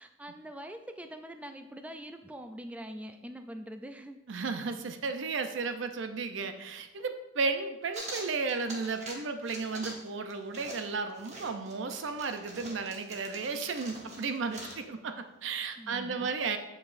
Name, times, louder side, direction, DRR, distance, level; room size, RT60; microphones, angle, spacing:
voice 1, 0.0-4.2 15.8-16.3, equal, 5° right, 7 dB, 0.3 m, -44 dB
voice 2, 4.3-16.6, right 4 dB, 75° right, 8 dB, 0.5 m, -34 dB
sound 1, 7.9-9.2 9.4-10.0 10.3-14.8, right 1 dB, 35° right, 1.0 m, -44 dB
8.0 x 5.3 x 2.5 m, 0.98 s
head